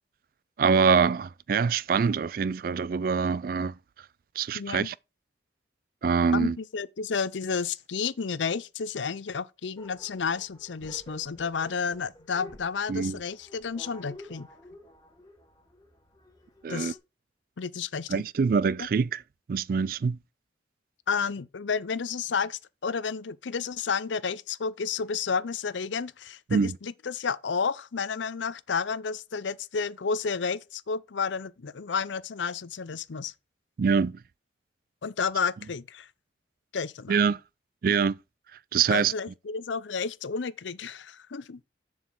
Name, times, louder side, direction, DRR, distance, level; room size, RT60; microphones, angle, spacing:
voice 1, 0.6-3.8 4.4-4.9 6.0-6.6 12.9-13.2 16.6-16.9 18.1-19.2 19.5-20.2 26.5-26.8 33.8-34.2 37.1-37.4 37.8-38.2 38.7-39.1, right 5 dB, 50° right, 0.3 m, -24 dB
voice 2, 4.5-4.9 6.3-14.5 16.7-17.0 17.6-18.2 18.8-18.9 21.1-33.3 35.0-36.1 36.7-37.2 38.9-41.6, left 5 dB, 85° left, 0.6 m, -31 dB
sound 1, 9.8-17.0, left 1 dB, 20° left, 1.8 m, -50 dB
7.2 x 6.4 x 3.8 m
head